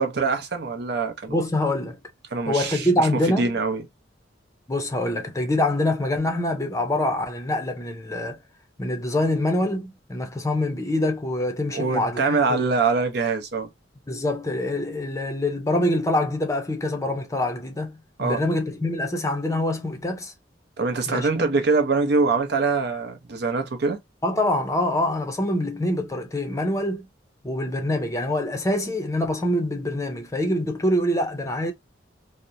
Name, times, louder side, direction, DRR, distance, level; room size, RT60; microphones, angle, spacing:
voice 1, 0.0-1.4 2.3-3.1 3.4-3.8 11.7-13.7 18.2-18.4 20.8-24.0, right 4 dB, 60° right, 0.6 m, -24 dB
voice 2, 1.3-2.0 2.5-3.5 4.7-8.4 8.8-12.6 14.1-20.3 21.1-21.4 24.2-27.1 27.4-31.7, left 1 dB, 15° left, 0.5 m, -25 dB
2.8 x 2.1 x 2.5 m
head